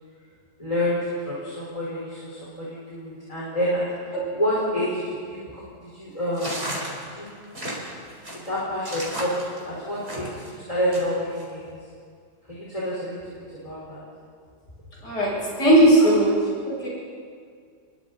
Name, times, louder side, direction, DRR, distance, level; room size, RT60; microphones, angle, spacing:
voice 1, 0.6-6.8 7.0-7.3 8.3-10.3 10.5-11.7 12.5-13.2 13.6-14.0, equal, 20° left, -7 dB, 4.7 m, -28 dB
sound 1, 6.3-10.5 10.9-11.4, right 1 dB, 35° right, 4.7 m, -34 dB
voice 2, 15.0-16.4 16.6-16.9, right 1 dB, 70° left, -6 dB, 8.4 m, -18 dB
29.5 x 22.0 x 4.2 m, 2.1 s
omnidirectional pair, 1.9 m